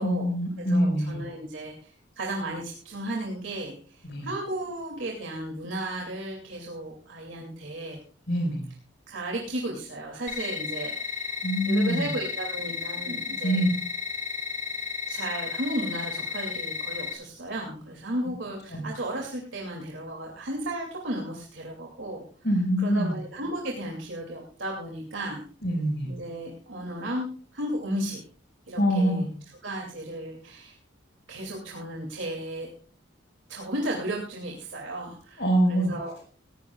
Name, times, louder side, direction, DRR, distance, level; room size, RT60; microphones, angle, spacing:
voice 1, 0.0-1.2 4.0-4.3 8.3-8.7 11.4-12.1 13.4-13.7 18.7-18.8 22.4-23.1 25.6-26.1 28.8-29.3 35.4-35.9, equal, 60° left, 3 dB, 5.3 m, -24 dB
voice 2, 0.6-8.0 9.1-13.6 15.1-22.2 22.8-25.4 26.0-28.2 28.7-29.2 29.6-30.8 31.3-32.7 33.5-36.1, right 1 dB, 75° right, -1 dB, 2.6 m, -34 dB
sound 1, 10.3-17.1, left 6 dB, 40° left, 3.0 m, -33 dB
18.5 x 16.5 x 2.4 m, 0.42 s
head